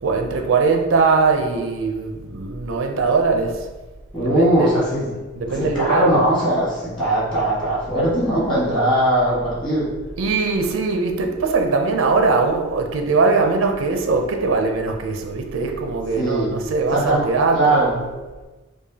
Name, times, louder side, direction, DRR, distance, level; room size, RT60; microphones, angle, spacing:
voice 1, 0.0-3.7 4.2-4.7 5.4-6.2 10.2-18.1, right 4 dB, 75° right, 3 dB, 0.5 m, -21 dB
voice 2, 4.1-5.1 5.5-9.9 16.2-16.5 16.9-18.0, right 1 dB, 25° left, -8 dB, 1.4 m, -20 dB
4.7 x 2.3 x 2.7 m, 1.2 s
head